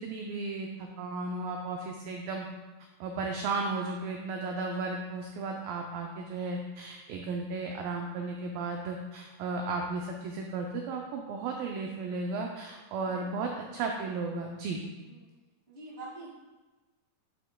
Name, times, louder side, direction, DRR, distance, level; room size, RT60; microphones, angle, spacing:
voice 1, 0.0-2.5 3.0-14.8, right 3 dB, 85° right, 1 dB, 2.0 m, -34 dB
voice 2, 13.0-13.5 15.1-15.3 15.7-16.3, right 2 dB, 25° right, -6 dB, 1.4 m, -46 dB
8.9 x 8.1 x 2.2 m, 1.2 s
omnidirectional pair, 4.7 m